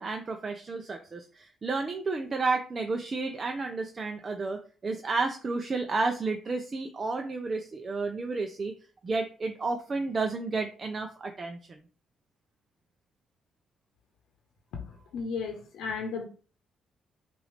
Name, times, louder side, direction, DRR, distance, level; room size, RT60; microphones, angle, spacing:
voice 1, 0.0-8.7 9.0-11.8, right 3 dB, 35° right, 5 dB, 0.6 m, -31 dB
voice 2, 14.8-16.3, left 5 dB, 85° left, 2 dB, 0.8 m, -35 dB
6.0 x 2.6 x 3.3 m, 0.39 s
cardioid pair, 90°, 0 cm